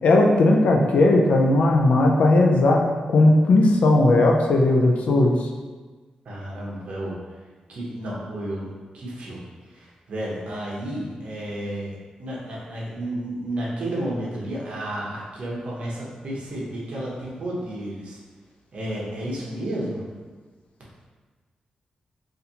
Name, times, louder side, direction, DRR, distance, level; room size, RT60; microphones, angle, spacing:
voice 1, 0.0-5.5, left 2 dB, 65° left, 0 dB, 0.4 m, -17 dB
voice 2, 6.2-7.4 7.7-18.2 18.7-20.0, right 1 dB, 55° right, -5 dB, 1.0 m, -32 dB
4.2 x 2.6 x 2.7 m, 1.3 s
wide cardioid pair, 160°, 2 cm